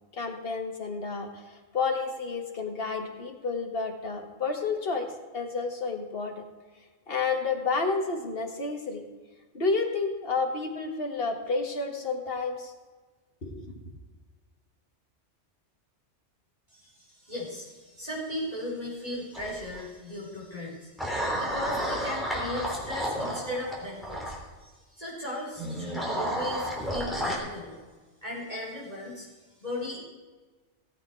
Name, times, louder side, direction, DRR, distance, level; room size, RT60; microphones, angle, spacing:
voice 1, 0.1-6.4 7.1-9.1 9.5-12.7 13.4-13.8, left 4 dB, 50° left, 3 dB, 1.8 m, -30 dB
voice 2, 16.7-20.9 21.4-27.8 28.2-29.3 29.6-30.0, left 1 dB, 30° right, -5 dB, 4.7 m, -37 dB
sound 1, 19.3-19.8 21.0-24.4 25.6-27.4, equal, ahead, 3.2 m, -31 dB
17.5 x 8.5 x 4.6 m, 1.3 s
omnidirectional pair, 1.3 m